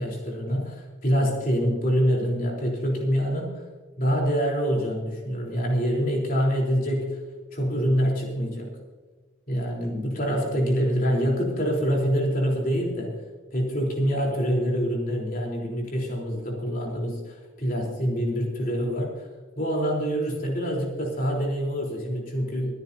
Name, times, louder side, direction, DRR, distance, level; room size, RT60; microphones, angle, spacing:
voice 1, 0.0-3.6 4.0-7.2 7.5-8.7 9.5-13.2 13.5-19.3 19.6-22.7, equal, 45° left, -1 dB, 3.8 m, -25 dB
26.5 x 10.0 x 2.8 m, 1.4 s
head